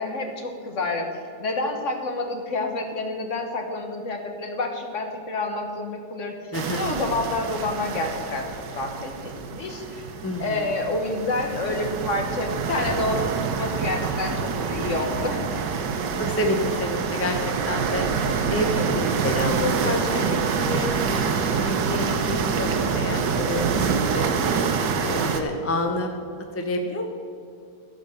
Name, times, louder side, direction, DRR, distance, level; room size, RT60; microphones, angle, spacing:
voice 1, 0.0-8.5 8.7-10.1 10.4-15.6, left 2 dB, 45° left, 3 dB, 1.4 m, -28 dB
voice 2, 6.5-6.8 10.2-10.6 16.2-18.1 18.5-24.3 25.0-26.1 26.5-27.0, left 1 dB, 20° left, 4 dB, 0.3 m, -28 dB
sound 1, 6.5-25.4, right 5 dB, 80° right, 1.5 m, -26 dB
15.0 x 5.3 x 6.7 m, 2.5 s
omnidirectional pair, 1.9 m